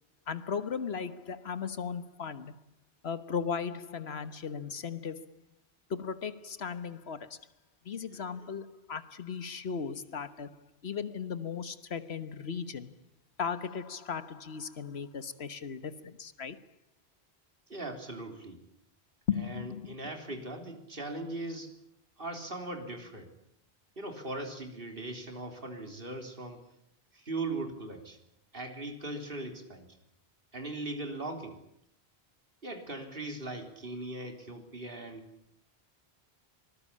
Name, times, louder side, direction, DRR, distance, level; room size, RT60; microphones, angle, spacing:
voice 1, 0.3-2.5 3.0-5.3 5.9-7.4 7.8-12.9 13.4-16.6 19.3-19.9, left 6 dB, 80° left, 1.5 m, -36 dB
voice 2, 17.7-18.6 19.4-21.7 22.2-23.3 24.0-26.6 27.1-28.2 28.5-30.0 30.5-31.6 32.6-35.3, right 2 dB, 60° right, 4.0 m, -39 dB
25.0 x 20.0 x 8.6 m
omnidirectional pair, 1.0 m